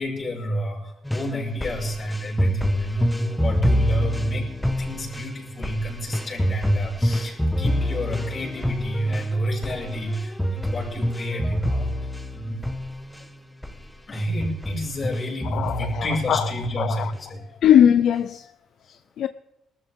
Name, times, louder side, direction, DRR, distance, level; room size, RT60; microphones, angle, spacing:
voice 1, 0.0-4.5 4.8-11.9 12.3-12.6 13.2-13.3 14.1-17.5, equal, 45° left, 5.8 m, -29 dB
sound 1, 1.0-13.3 13.6-13.8 14.1-16.2 16.6-17.2 17.6-17.7, equal, 5° left, 1.2 m, -26 dB
voice 2, 15.4-16.5 16.8-17.1 17.6-18.5 18.9-19.3, left 9 dB, 70° left, 0.4 m, -20 dB
21.0 x 13.5 x 3.7 m
cardioid pair, 90°, 0 cm